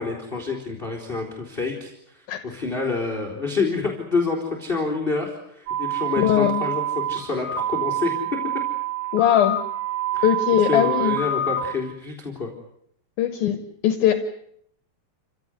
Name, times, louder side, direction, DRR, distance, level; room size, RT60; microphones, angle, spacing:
voice 1, 0.0-1.9 2.4-8.1 10.1-10.3 10.7-12.5, left 4 dB, 15° left, 2 dB, 3.3 m, -27 dB
sound 1, 5.7-11.7, right 6 dB, 55° right, 5.1 m, -27 dB
voice 2, 6.2-6.6 9.1-9.6 10.2-11.2 13.2-14.1, left 11 dB, 70° left, 9 dB, 2.8 m, -20 dB
28.0 x 16.5 x 9.5 m, 0.71 s
omnidirectional pair, 4.8 m